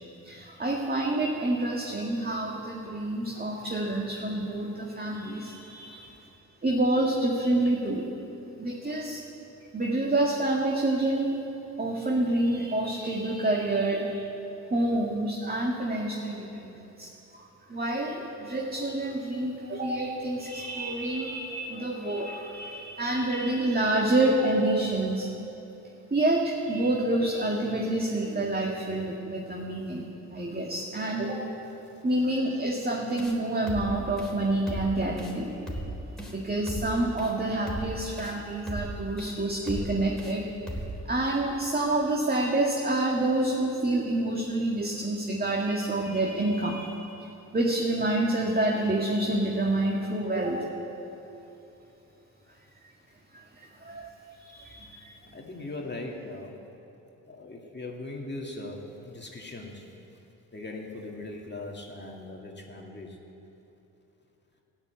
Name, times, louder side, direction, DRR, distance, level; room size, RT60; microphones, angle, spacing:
voice 1, 0.2-6.1 6.6-8.1 8.6-9.2 9.7-11.4 11.8-14.3 14.7-25.3 26.1-31.5 32.0-35.9 36.3-40.4 41.1-50.7 52.8-52.9 53.3-54.1 54.4-55.1, right 1 dB, 25° right, -1 dB, 2.0 m, -28 dB
sound 1, 33.2-33.4 33.7-33.9 34.2-34.3 34.7-34.9 35.2-35.4 35.7-35.9 36.2-36.4 36.7-36.9 37.2-37.3 37.7-37.9 38.2-38.4 38.7-38.9 39.2-39.3 39.7-39.9 40.2-40.4 40.7-40.9, equal, ahead, 3.8 m, -36 dB
voice 2, 55.3-56.6 57.3-59.9 60.5-63.2, left 2 dB, 25° left, -1 dB, 2.1 m, -39 dB
14.0 x 9.8 x 8.0 m, 3.0 s
hypercardioid pair, 50°, 40 cm